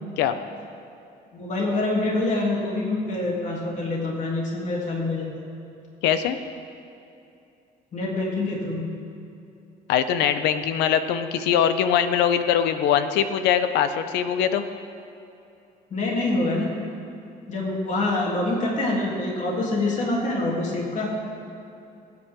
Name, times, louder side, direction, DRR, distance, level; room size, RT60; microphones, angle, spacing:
voice 1, 1.3-5.3 7.9-8.8 15.9-16.7 17.5-21.1, left 2 dB, 45° left, -3 dB, 3.3 m, -25 dB
voice 2, 6.0-6.4 9.9-14.6, left 9 dB, 90° left, 10 dB, 0.8 m, -22 dB
22.0 x 9.4 x 3.8 m, 2.7 s
cardioid pair, 110°, 17 cm